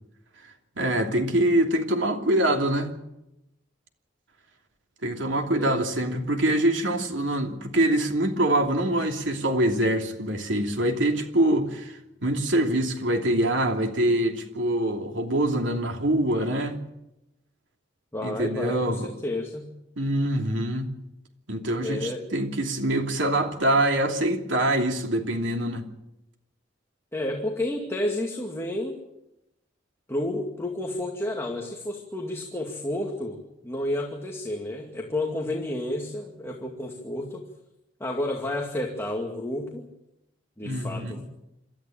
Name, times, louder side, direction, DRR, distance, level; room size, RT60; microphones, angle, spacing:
voice 1, 0.8-2.9 5.0-16.8 18.2-19.1 20.0-20.9 21.5-25.8 40.6-41.2, right 1 dB, 80° right, 2.9 m, -24 dB
voice 2, 18.1-19.7 21.8-22.3 27.1-29.0 30.1-37.5 38.0-39.9 40.6-41.2, left 1 dB, 15° left, 2.3 m, -31 dB
27.0 x 13.5 x 8.8 m
head